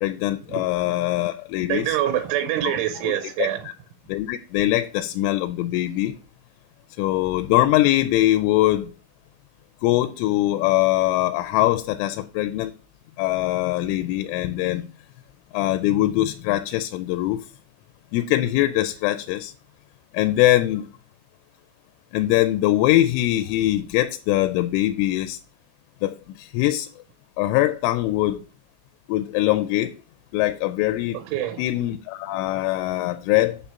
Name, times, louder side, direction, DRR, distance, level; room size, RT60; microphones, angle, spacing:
voice 1, 0.0-2.0 2.6-2.8 3.0-3.1 3.4-3.5 4.1-6.1 7.0-8.9 9.8-12.7 13.2-14.8 15.5-17.4 18.1-19.5 20.1-20.9 22.1-25.4 26.0-26.9 27.4-28.4 29.1-29.9 30.3-31.2 31.6-33.6, left 15 dB, 90° left, 3.2 m, -22 dB
voice 2, 1.7-3.7 31.1-31.6, right 11 dB, 85° right, 3.1 m, -25 dB
7.4 x 7.2 x 5.6 m
omnidirectional pair, 5.5 m